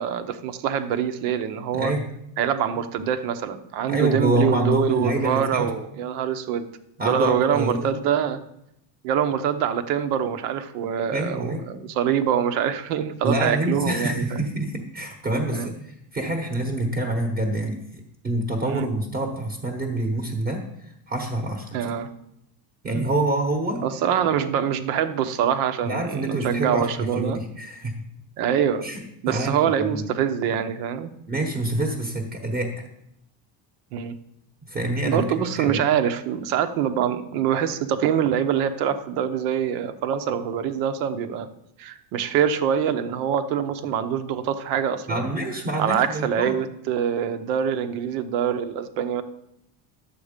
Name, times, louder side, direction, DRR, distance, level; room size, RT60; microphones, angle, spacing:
voice 1, 0.0-1.9 2.4-6.7 7.0-8.4 9.0-14.4 15.5-15.7 18.6-18.8 21.7-22.1 22.9-23.1 23.8-27.4 28.4-28.8 29.2-31.1 33.9-34.1 35.0-41.5 41.8-45.3 45.8-49.2, right 8 dB, 85° right, 9 dB, 1.2 m, -24 dB
voice 2, 1.7-2.0 3.9-5.7 7.0-7.9 11.1-11.6 13.2-21.7 22.8-23.8 25.8-27.9 28.8-30.0 31.3-32.8 34.6-35.8 45.1-46.5, right 1 dB, 20° right, 2 dB, 1.1 m, -26 dB
11.5 x 7.8 x 5.2 m, 0.79 s
cardioid pair, 170°, 44 cm